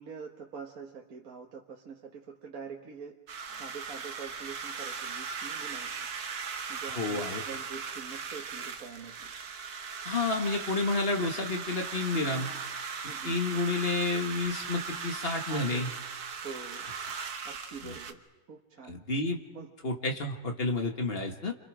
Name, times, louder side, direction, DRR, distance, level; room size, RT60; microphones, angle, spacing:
voice 1, 0.0-3.1 3.5-6.0 6.7-9.3 13.0-13.4 15.5-16.0 16.4-16.9 17.4-18.2 18.5-18.9 19.5-19.7 21.1-21.2, right 5 dB, 65° right, 0 dB, 1.8 m, -45 dB
sound 1, 3.3-18.1, right 6 dB, 80° right, 1.7 m, -38 dB
voice 2, 7.0-7.4 10.1-12.5 13.2-15.9 18.8-19.4 19.8-21.5, left 3 dB, 40° left, 3 dB, 2.0 m, -30 dB
30.0 x 26.0 x 5.0 m, 1.1 s
omnidirectional pair, 1.6 m